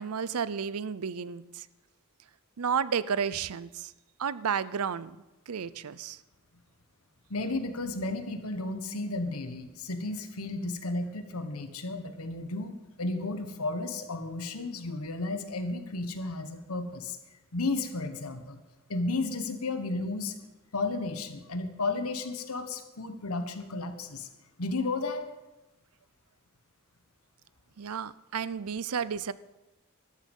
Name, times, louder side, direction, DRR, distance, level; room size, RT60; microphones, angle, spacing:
voice 1, 0.0-1.7 2.6-3.9 4.2-5.2 5.5-6.2 27.8-29.3, right 7 dB, 85° right, 18 dB, 0.6 m, -32 dB
voice 2, 7.3-17.2 17.5-18.6 18.9-20.4 20.7-24.3 24.6-25.3, left 2 dB, 80° left, 8 dB, 1.4 m, -33 dB
13.0 x 13.0 x 5.4 m, 1.0 s
head